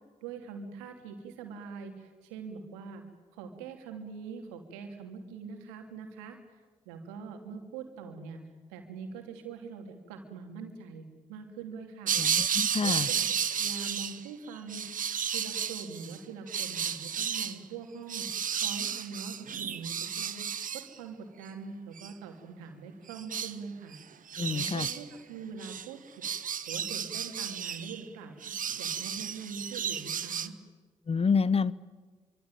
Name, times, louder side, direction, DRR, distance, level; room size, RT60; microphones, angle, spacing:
voice 1, 0.2-3.0 3.3-6.4 6.8-8.4 8.7-12.2 12.8-14.8 15.3-20.5 20.7-24.0 24.4-26.2 26.7-30.5, right 5 dB, 80° right, 4 dB, 3.0 m, -43 dB
sound 1, 12.1-14.3 14.6-16.2 16.5-17.6 18.1-20.9 22.0-22.1 23.1-23.5 23.9-24.0 24.3-25.0 25.6-25.9 26.2-28.0 28.4-30.5, right 8 dB, 50° right, 1.4 m, -33 dB
voice 2, 12.2-13.1 24.4-24.9 31.1-31.8, left 5 dB, 35° left, 19 dB, 1.0 m, -28 dB
26.0 x 25.0 x 9.2 m, 1.4 s
hypercardioid pair, 40°, 17 cm